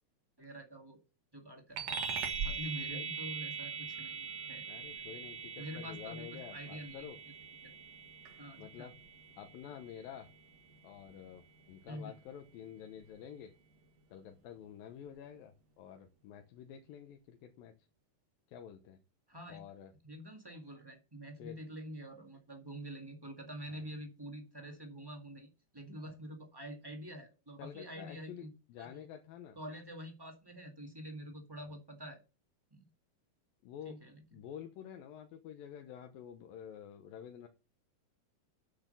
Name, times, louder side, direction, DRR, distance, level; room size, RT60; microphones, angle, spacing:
voice 1, 0.4-1.0 1.3-2.0 2.4-4.6 5.6-6.3 6.5-7.1 7.6-7.7 8.4-8.9 11.9-12.1 19.3-19.6 20.0-28.5 28.8-29.1 29.5-32.2 32.7-32.8 33.8-34.2, equal, 15° right, 2 dB, 0.7 m, -46 dB
sound 1, 1.8-11.6, right 6 dB, 60° right, 2.4 m, -42 dB
voice 2, 4.7-7.2 8.6-9.0 9.4-10.3 10.8-13.5 14.1-17.7 18.5-19.0 19.5-19.9 21.4-21.6 23.7-23.9 27.6-29.6 33.6-34.0 34.3-37.5, left 9 dB, 85° left, 4 dB, 2.8 m, -49 dB
8.7 x 6.1 x 6.8 m, 0.30 s
omnidirectional pair, 4.0 m